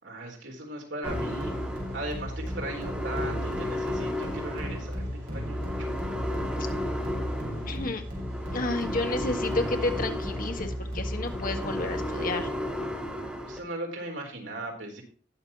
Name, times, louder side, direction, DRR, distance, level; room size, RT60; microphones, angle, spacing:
voice 1, 0.0-1.5 1.9-5.9 13.4-15.0, right 2 dB, 70° right, 1 dB, 3.9 m, -38 dB
sound 1, 1.0-13.6, left 1 dB, 5° right, 2.8 m, -34 dB
sound 2, 1.1-12.6, equal, 50° right, 4.5 m, -35 dB
voice 2, 7.7-8.0 8.5-12.5, left 2 dB, 50° left, 5 dB, 1.8 m, -31 dB
19.0 x 6.8 x 2.9 m, 0.40 s
head